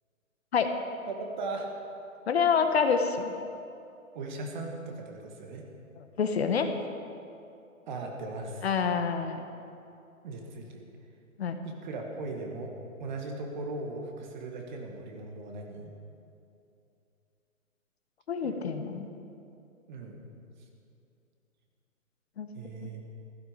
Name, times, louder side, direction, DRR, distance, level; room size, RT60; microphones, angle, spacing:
voice 1, 1.1-1.7 4.1-5.6 7.9-8.7 10.2-10.8 11.6-12.7 13.0-15.9 18.4-18.9 19.9-20.2 22.5-23.0, right 3 dB, 35° right, 2 dB, 1.9 m, -38 dB
voice 2, 2.3-3.3 6.0-6.7 8.6-9.5 11.4-11.6 18.3-19.1 22.4-22.5 22.8-22.9, left 6 dB, 50° left, 7 dB, 1.2 m, -27 dB
15.5 x 15.5 x 5.2 m, 2.6 s
hypercardioid pair, 160°, 41 cm